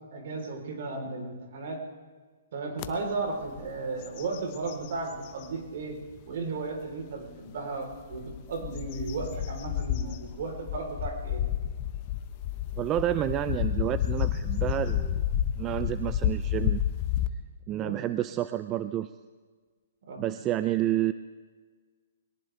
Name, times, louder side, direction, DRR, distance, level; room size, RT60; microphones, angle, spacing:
voice 1, 0.1-1.8 2.5-6.0 6.3-11.4 17.7-17.9 20.1-20.3, right 3 dB, 60° right, 3 dB, 3.8 m, -35 dB
sound 1, 2.8-2.9 3.4-3.7 4.0-5.5 6.1-6.2 7.9-17.3, left 10 dB, 35° left, 0.9 m, -30 dB
voice 2, 12.8-15.2 15.6-16.8 17.7-19.1 20.2-21.1, right 13 dB, 25° right, 12 dB, 0.4 m, -29 dB
22.0 x 18.5 x 3.4 m, 1.5 s
hypercardioid pair, 140°, 0 cm